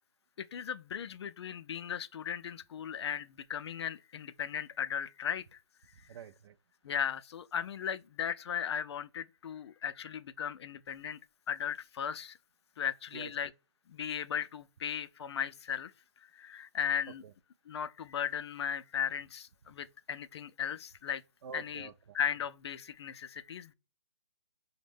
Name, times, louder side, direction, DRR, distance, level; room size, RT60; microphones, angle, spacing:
voice 1, 0.4-5.6 6.8-11.2 11.5-12.4 12.8-13.5 13.9-15.9 16.3-17.2 17.7-21.2 21.5-21.9 22.1-23.7, left 8 dB, 60° left, 0.4 m, -37 dB
voice 2, 6.1-6.6 13.1-13.3 17.2-17.3 21.4-22.2, right 6 dB, 60° right, 0.4 m, -47 dB
5.1 x 2.1 x 3.3 m
hypercardioid pair, 140°, 16 cm